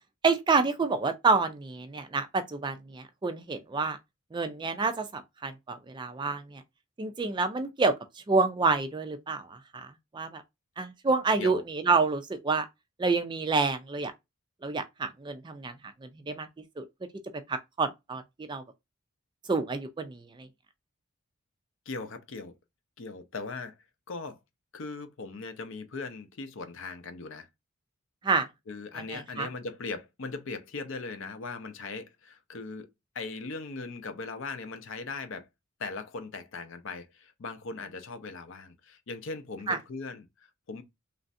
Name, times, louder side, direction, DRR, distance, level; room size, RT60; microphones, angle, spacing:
voice 1, 0.2-4.0 4.3-6.6 7.0-7.9 8.3-9.9 10.1-10.4 10.8-12.7 13.0-14.1 14.6-15.7 16.3-16.5 16.8-16.9 17.5-18.2 18.5-18.6 19.5-20.2 28.2-28.5 29.1-29.5 39.7-39.8, right 4 dB, 20° right, 0.3 m, -28 dB
voice 2, 21.9-22.5 23.0-23.8 24.1-24.4 24.7-27.5 28.7-35.5 35.8-40.8, left 3 dB, 60° left, 0.5 m, -39 dB
3.1 x 2.5 x 2.5 m
head